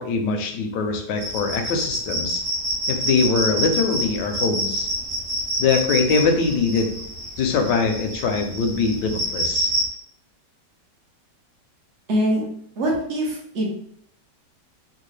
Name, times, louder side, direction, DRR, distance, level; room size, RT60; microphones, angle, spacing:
voice 1, 0.0-2.4 2.9-4.9 5.6-6.9 7.4-9.7, left 4 dB, 80° left, 5 dB, 1.2 m, -22 dB
sound 1, 1.2-9.9, right 1 dB, 90° right, 1.7 m, -27 dB
voice 2, 12.1-12.4 12.8-13.7, right 1 dB, 50° right, -2 dB, 1.0 m, -23 dB
3.7 x 2.3 x 3.2 m, 0.66 s
omnidirectional pair, 1.9 m